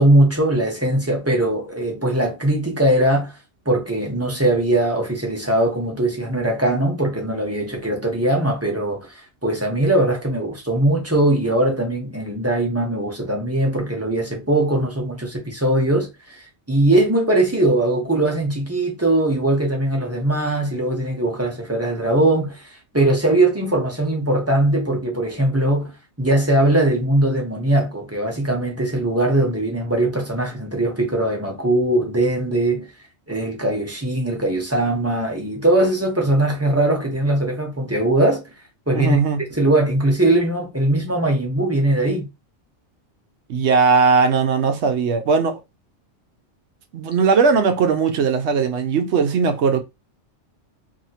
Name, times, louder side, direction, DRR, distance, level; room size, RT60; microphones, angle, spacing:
voice 1, 0.0-3.4 3.7-25.9 26.2-32.9 33.3-38.5 38.9-39.2 39.5-42.3, right 1 dB, 15° right, 0.7 m, -20 dB
voice 2, 38.9-39.4 43.5-45.6 46.9-49.8, right 5 dB, 70° right, 0.8 m, -18 dB
2.8 x 2.8 x 2.8 m
omnidirectional pair, 1.3 m